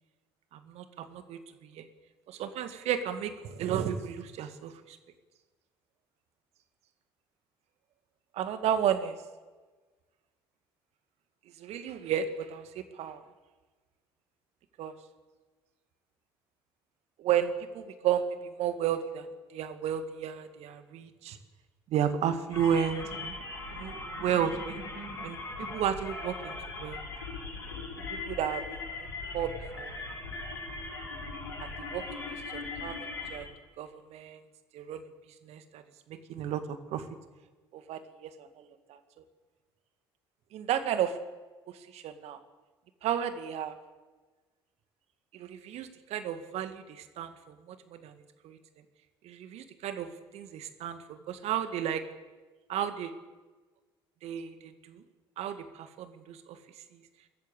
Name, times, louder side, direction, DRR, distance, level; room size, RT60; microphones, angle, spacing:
voice 1, 0.5-1.9 2.3-5.0 8.3-9.2 11.6-13.2 14.8-14.9 17.2-19.3 19.5-21.4 21.9-23.3 23.7-24.8 25.2-27.0 28.2-28.8 29.3-29.9 31.6-32.0 32.3-33.5 33.8-34.4 34.7-35.0 35.4-35.8 36.1-36.6 36.9-37.1 37.7-39.0 40.5-41.2 41.9-42.4 43.0-43.8 45.3-48.1 48.4-48.6 49.2-52.0 52.7-53.1 54.2-55.0 55.4-56.6, right 9 dB, 60° right, 9 dB, 2.0 m, -33 dB
sound 1, 22.5-33.4, left 3 dB, 85° left, 6.0 m, -39 dB
22.5 x 14.0 x 8.2 m, 1.3 s
hypercardioid pair, 55°, 12 cm